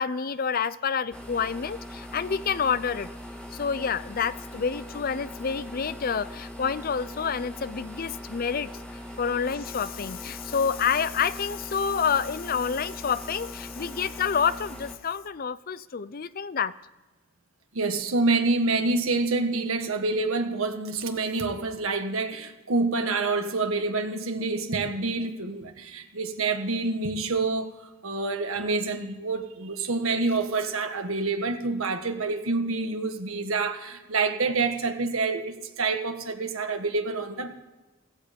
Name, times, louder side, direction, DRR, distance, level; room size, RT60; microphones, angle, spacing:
voice 1, 0.0-3.1 3.5-8.7 9.2-16.7, left 6 dB, 45° left, 16 dB, 0.5 m, -28 dB
sound 1, 1.1-15.0, left 1 dB, 5° left, 1.8 m, -41 dB
voice 2, 17.7-27.7 28.0-37.5, right 3 dB, 75° right, 5 dB, 1.5 m, -27 dB
16.0 x 15.5 x 5.2 m, 1.1 s
head